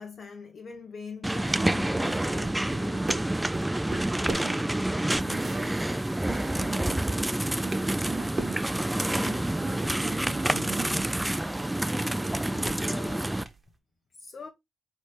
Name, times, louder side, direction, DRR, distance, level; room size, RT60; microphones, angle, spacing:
voice 1, 0.0-3.2 3.9-4.5 9.1-9.5 11.9-13.4 14.2-14.5, left 5 dB, 55° left, 0.7 m, -43 dB
sound 1, 1.2-13.4, right 1 dB, 10° right, 0.3 m, -28 dB
sound 2, 1.8-7.1 7.4-12.0 12.3-13.6, right 2 dB, 40° right, 1.1 m, -40 dB
voice 2, 5.2-5.7 6.2-8.7 9.2-11.1, right 6 dB, 70° right, 0.8 m, -41 dB
4.2 x 3.2 x 3.2 m
cardioid pair, 65°, 0 cm